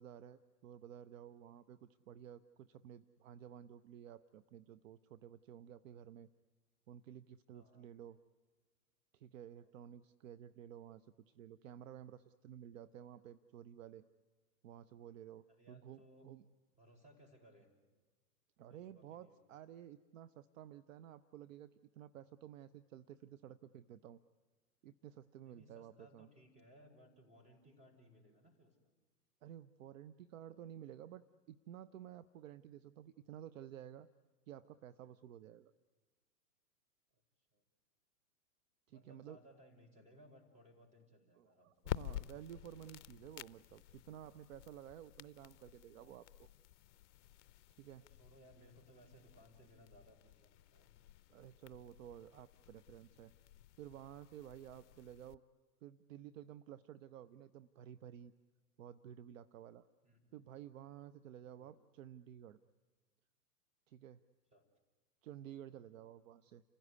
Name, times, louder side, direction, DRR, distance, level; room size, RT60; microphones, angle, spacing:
voice 1, 0.0-6.3 6.9-8.2 9.1-14.1 14.6-16.4 18.6-24.2 24.8-26.3 29.4-34.1 34.5-35.7 38.9-39.4 41.3-46.5 47.8-48.1 51.3-53.3 53.8-55.4 55.8-58.3 58.8-59.9 60.3-62.6 63.9-64.2 65.2-66.6, right 10 dB, 55° right, 13 dB, 0.8 m, -53 dB
voice 2, 7.5-7.9 9.6-9.7 15.6-16.3 16.7-17.7 18.7-19.6 25.4-28.9 37.1-37.2 37.5-37.6 38.9-41.7 47.9-50.9 60.0-60.4 61.6-61.7 64.5-64.7, equal, 15° right, 4 dB, 5.6 m, -64 dB
sound 1, 41.8-55.3, left 13 dB, 50° left, 0.7 m, -51 dB
29.0 x 16.0 x 9.7 m, 1.4 s
hypercardioid pair, 120°, 47 cm